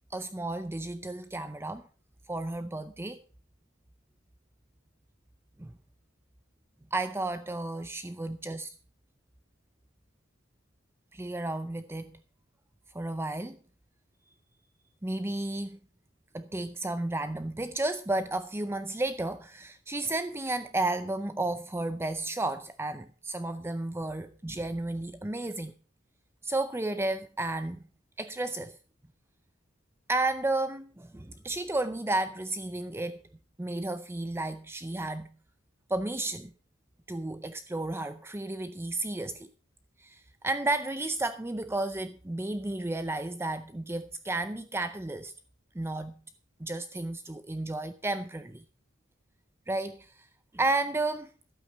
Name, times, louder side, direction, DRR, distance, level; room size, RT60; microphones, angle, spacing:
voice 1, 0.1-1.8 2.3-3.2 5.6-5.7 6.9-8.7 11.1-12.1 12.9-13.6 15.0-15.8 16.3-25.7 26.4-27.8 28.2-28.8 30.1-33.2 33.6-35.3 35.9-36.5 37.1-39.5 40.0-45.3 45.7-46.1 46.6-48.6 49.7-50.1 50.5-51.3, right 2 dB, 15° right, 0.5 m, -32 dB
12.0 x 8.6 x 6.0 m
head